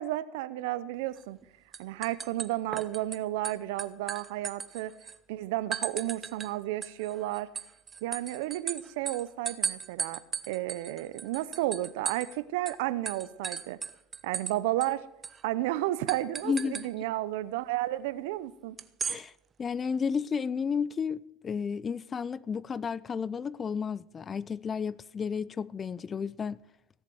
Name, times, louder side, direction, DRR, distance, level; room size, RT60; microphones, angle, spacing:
voice 1, 0.0-1.4 1.8-4.9 5.3-7.5 8.0-10.2 10.5-13.8 14.2-15.0 15.4-18.8, right 15 dB, 80° right, 0.8 m, -32 dB
sound 1, 1.2-1.4 1.7-3.2 3.4-5.2 5.7-6.5 6.8-12.4 12.7-12.8 13.1-14.5 14.8-14.9 15.2-15.4 16.1-16.9 18.8-19.2, right 6 dB, 25° right, 0.8 m, -36 dB
voice 2, 16.4-16.9 19.1-19.3 19.6-26.6, left 6 dB, 25° left, 0.5 m, -32 dB
17.0 x 7.4 x 7.9 m
supercardioid pair, 115°, 0 cm